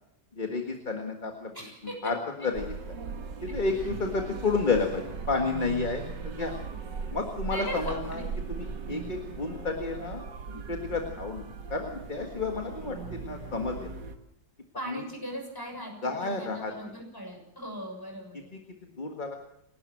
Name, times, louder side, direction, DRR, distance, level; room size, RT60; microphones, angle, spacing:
voice 1, 0.3-1.5 2.0-2.2 2.4-2.7 3.4-6.5 7.1-8.2 8.5-14.0 14.9-15.0 16.0-16.7 19.0-19.4, left 4 dB, 30° left, 3 dB, 1.8 m, -31 dB
voice 2, 1.5-2.0 7.5-8.2 14.7-18.5, equal, 10° left, 2 dB, 6.6 m, -39 dB
sound 1, 2.5-14.1, right 5 dB, 90° right, 2.4 m, -38 dB
28.5 x 12.5 x 7.8 m, 0.81 s
omnidirectional pair, 1.9 m